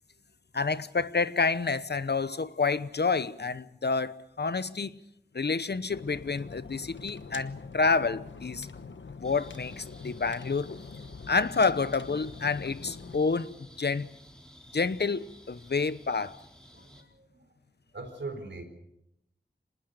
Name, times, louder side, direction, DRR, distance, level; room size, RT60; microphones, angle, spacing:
voice 1, 0.5-5.0 5.3-8.7 9.2-10.7 11.3-14.1 14.7-16.3, left 4 dB, 65° left, 0.9 m, -29 dB
sound 1, 5.9-13.2, left 4 dB, 90° left, 1.1 m, -44 dB
sound 2, 9.2-17.0, equal, 5° left, 4.0 m, -53 dB
voice 2, 16.7-17.5 17.9-18.6, right 3 dB, 80° right, 4.4 m, -41 dB
25.5 x 19.5 x 6.7 m
wide cardioid pair, 45°, 19 cm